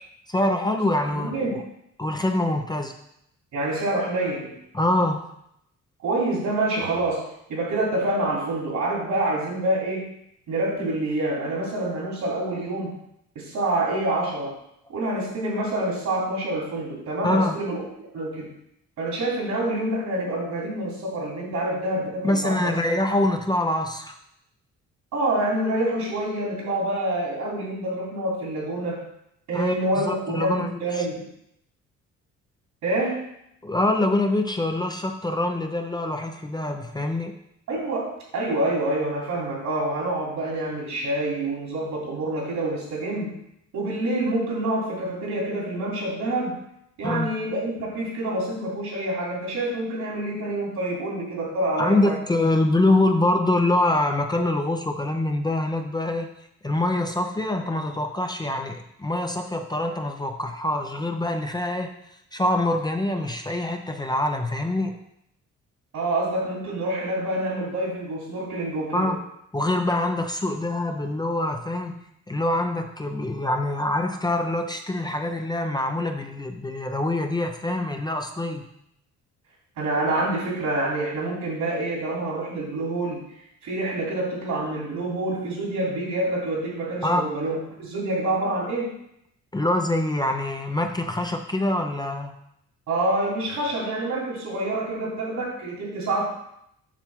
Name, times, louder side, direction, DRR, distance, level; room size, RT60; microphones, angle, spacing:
voice 1, 0.3-1.4 2.0-2.9 4.7-5.3 17.2-17.5 22.2-24.2 29.5-31.1 33.6-37.3 47.0-47.3 51.8-56.3 56.6-61.9 62.3-65.0 68.9-69.2 69.5-72.0 72.3-78.6 87.0-87.3 89.5-92.3, left 1 dB, 15° left, 4 dB, 0.6 m, -25 dB
voice 2, 1.0-1.5 3.5-4.6 6.0-10.1 10.5-12.9 13.3-14.5 14.9-17.8 18.1-18.5 19.0-22.7 25.1-29.0 29.5-31.2 32.8-33.2 37.7-43.4 43.7-46.6 47.0-52.2 65.9-69.2 79.8-83.2 83.6-88.9 92.9-96.2, right 1 dB, 75° right, -3 dB, 3.1 m, -27 dB
7.4 x 5.6 x 3.6 m, 0.76 s
cardioid pair, 90°, 30 cm